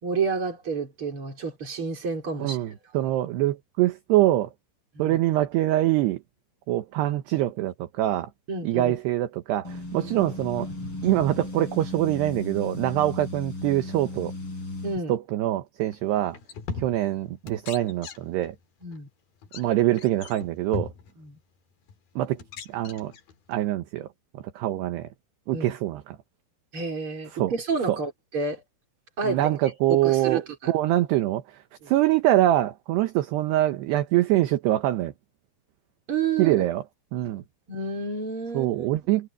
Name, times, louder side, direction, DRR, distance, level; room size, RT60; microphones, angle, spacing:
voice 1, 0.0-2.6 4.9-5.2 8.5-9.0 14.8-15.1 18.8-19.1 21.2-21.4 25.5-25.7 26.7-28.6 29.2-29.5 29.9-30.7 31.8-31.9 36.1-36.7 37.7-38.9, right 4 dB, 25° right, 4.8 m, -30 dB
voice 2, 2.4-4.5 5.0-6.2 6.7-8.3 8.6-10.7 11.0-14.3 15.1-16.4 16.8-18.5 19.5-20.9 22.2-22.4 22.7-23.1 23.5-24.1 24.6-25.1 25.5-26.0 27.4-27.5 27.9-28.0 29.2-30.4 30.7-31.4 31.9-35.1 36.4-36.8 37.1-37.4 38.5-39.3, right 14 dB, 70° right, 2.8 m, -24 dB
sound 1, 9.6-15.0, left 2 dB, 25° left, 8.6 m, -36 dB
sound 2, 15.9-16.0 16.3-17.2 17.5-18.5 18.8-19.0 19.4-19.6 20.0-21.1 21.9-22.0 22.4-23.6, left 5 dB, 50° left, 3.7 m, -38 dB
omnidirectional pair, 5.8 m